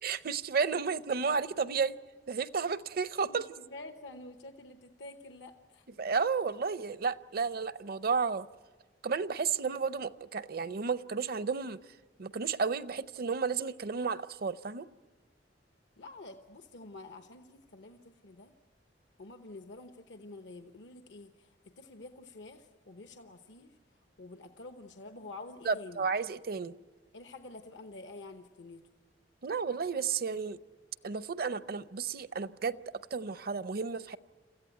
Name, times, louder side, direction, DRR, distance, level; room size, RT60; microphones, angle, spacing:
voice 1, 0.0-1.9 2.3-3.5 6.0-8.5 9.0-11.8 12.2-14.9 25.7-26.7 29.4-30.6 31.0-32.8 33.1-34.2, right 5 dB, 55° right, 15 dB, 0.6 m, -32 dB
voice 2, 3.3-5.9 16.0-18.5 19.2-23.7 24.2-26.1 27.1-28.8, left 2 dB, 75° left, 7 dB, 1.0 m, -48 dB
27.5 x 15.0 x 9.2 m, 1.4 s
head